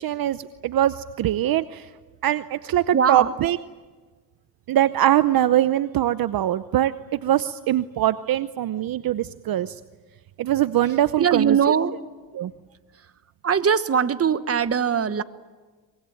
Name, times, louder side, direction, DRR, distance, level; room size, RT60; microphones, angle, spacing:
voice 1, 0.0-1.9 2.2-3.6 4.7-9.8 10.4-11.6 12.3-12.5, right 12 dB, 60° right, 13 dB, 0.8 m, -22 dB
voice 2, 2.9-3.3 11.2-11.9 13.4-15.2, right 7 dB, 35° right, 12 dB, 1.2 m, -21 dB
24.5 x 22.5 x 9.1 m, 1.3 s
cardioid pair, 85°, 40 cm